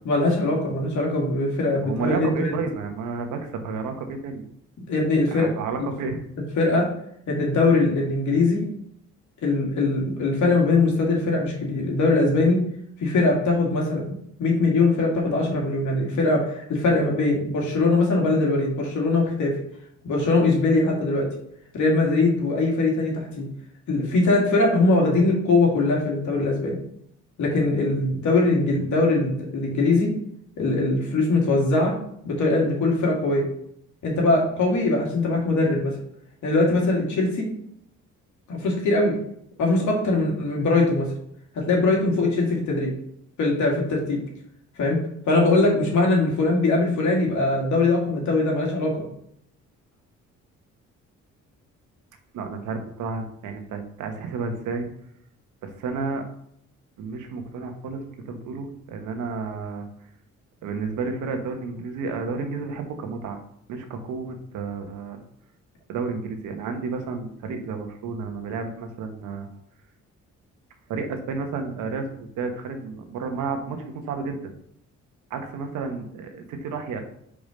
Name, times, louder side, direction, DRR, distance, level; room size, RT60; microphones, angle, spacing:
voice 1, 0.0-2.5 4.9-5.5 6.6-6.9 7.3-8.6 9.4-12.6 13.0-19.5 20.0-21.3 21.7-23.5 23.9-26.8 27.4-30.1 30.6-32.0 32.2-33.5 34.0-35.9 36.4-37.5 38.5-39.2 39.6-41.1 41.5-42.9 43.4-44.2 44.8-45.0 45.3-49.0, left 2 dB, 75° left, -1 dB, 2.4 m, -21 dB
voice 2, 1.8-4.4 5.3-6.2 28.5-28.6 52.3-54.9 55.6-56.2 57.0-59.9 60.6-63.4 63.7-65.2 65.9-69.5 70.9-74.4 75.3-77.0, right 4 dB, 90° right, 5 dB, 1.2 m, -31 dB
5.3 x 5.0 x 5.1 m, 0.71 s
cardioid pair, 90°, 30 cm